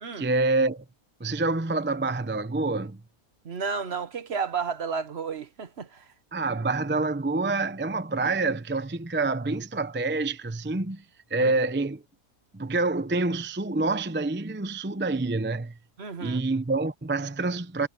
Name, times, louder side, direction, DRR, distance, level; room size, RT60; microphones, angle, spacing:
voice 1, 0.2-0.8 1.2-3.0 6.3-11.0 11.3-12.0 12.5-15.7 16.2-17.9, right 3 dB, 15° right, 0.5 m, -27 dB
voice 2, 3.4-6.1 11.4-11.5 16.0-16.4, right 5 dB, 50° right, 1.2 m, -32 dB
omnidirectional pair, 1.5 m